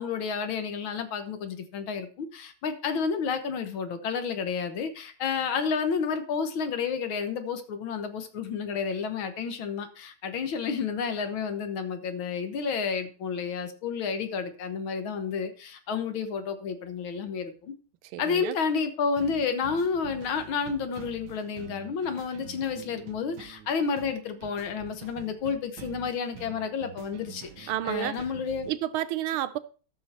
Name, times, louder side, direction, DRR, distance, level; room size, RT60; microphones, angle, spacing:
voice 1, 0.0-17.7 18.2-28.7, left 6 dB, 75° left, 1.9 m, -30 dB
voice 2, 18.1-18.6 27.7-28.2 28.7-29.6, right 13 dB, 90° right, 1.6 m, -30 dB
sound 1, 19.2-28.7, right 9 dB, 65° right, 1.3 m, -47 dB
13.0 x 6.4 x 4.3 m
omnidirectional pair, 2.2 m